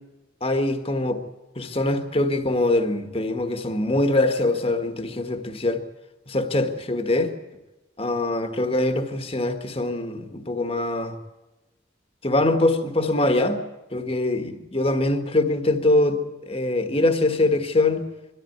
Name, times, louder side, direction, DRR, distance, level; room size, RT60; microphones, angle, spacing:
voice 1, 0.4-1.2 1.5-5.8 6.3-7.3 8.0-11.1 12.2-13.6 13.9-18.1, left 2 dB, 30° left, 1.5 m, -23 dB
23.0 x 13.5 x 9.4 m
head